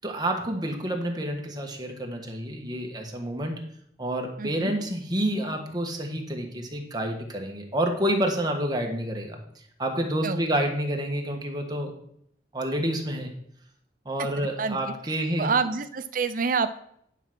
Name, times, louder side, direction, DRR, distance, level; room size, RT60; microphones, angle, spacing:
voice 1, 0.0-3.5 4.0-9.4 9.8-11.9 12.5-13.3 14.0-15.5, right 1 dB, 25° right, 2 dB, 1.3 m, -28 dB
voice 2, 4.4-4.7 10.2-10.4 14.4-14.8 15.1-16.8, right 5 dB, 50° right, 11 dB, 0.6 m, -28 dB
10.0 x 4.8 x 6.1 m, 0.69 s
head